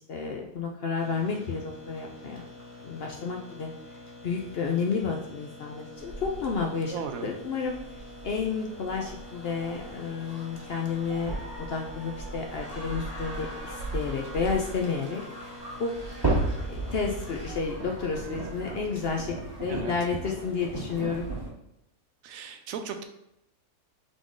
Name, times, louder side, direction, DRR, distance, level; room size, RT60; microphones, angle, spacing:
voice 1, 0.1-2.4 2.8-3.7 4.2-7.0 7.2-7.7 8.2-15.5 15.8-15.9 16.7-19.3 19.6-21.3, left 5 dB, 60° left, 1 dB, 0.6 m, -31 dB
sound 1, 0.9-20.6, left 1 dB, 10° left, 1.3 m, -47 dB
sound 2, 6.0-21.5, right 2 dB, 20° right, 1.2 m, -36 dB
voice 2, 6.9-7.3 19.7-20.0 22.2-23.0, right 6 dB, 75° right, 6 dB, 1.0 m, -36 dB
3.8 x 3.7 x 3.6 m, 0.82 s
omnidirectional pair, 1.5 m